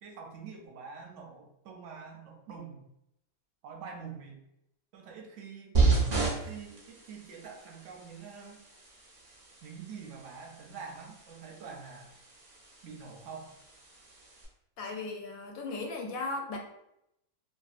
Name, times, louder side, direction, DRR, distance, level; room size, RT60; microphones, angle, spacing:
voice 1, 0.0-2.9 3.6-4.4 4.9-5.8 6.1-8.7 9.6-12.1 12.8-13.6, right 5 dB, 65° right, 1 dB, 0.8 m, -46 dB
sound 1, 5.7-14.4, right 4 dB, 85° right, 0.3 m, -33 dB
voice 2, 14.8-16.6, left 3 dB, 70° left, 1 dB, 0.9 m, -36 dB
2.6 x 2.3 x 2.4 m, 0.81 s
omnidirectional pair, 1.6 m